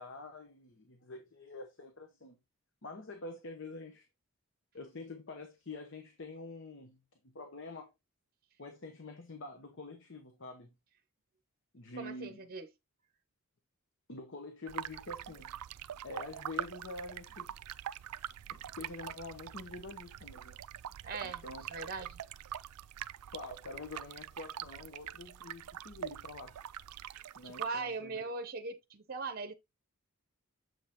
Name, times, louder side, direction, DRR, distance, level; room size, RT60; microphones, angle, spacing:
voice 1, 0.0-2.4 2.8-4.1 4.7-7.0 7.2-7.9 8.6-10.7 11.7-12.5 14.1-15.5 16.0-17.5 18.5-20.6 21.2-21.7 23.3-26.5 27.3-28.3, left 2 dB, 55° left, 0.9 m, -46 dB
voice 2, 12.0-12.7 21.0-21.4 21.7-22.2 27.1-29.5, right 4 dB, 40° right, 0.7 m, -40 dB
sound 1, 14.7-27.7, right 10 dB, 85° right, 0.4 m, -44 dB
7.4 x 5.3 x 2.9 m
head